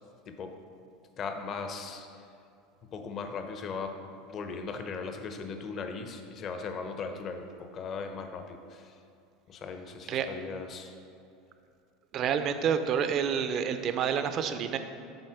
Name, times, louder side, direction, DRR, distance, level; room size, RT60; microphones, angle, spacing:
voice 1, 1.2-2.2 2.9-4.0 4.3-9.0 9.5-10.9, left 4 dB, 40° left, 6 dB, 0.7 m, -38 dB
voice 2, 12.1-14.8, right 7 dB, 45° right, 9 dB, 0.5 m, -28 dB
8.0 x 4.2 x 5.8 m, 2.6 s
supercardioid pair, 125°, 0 cm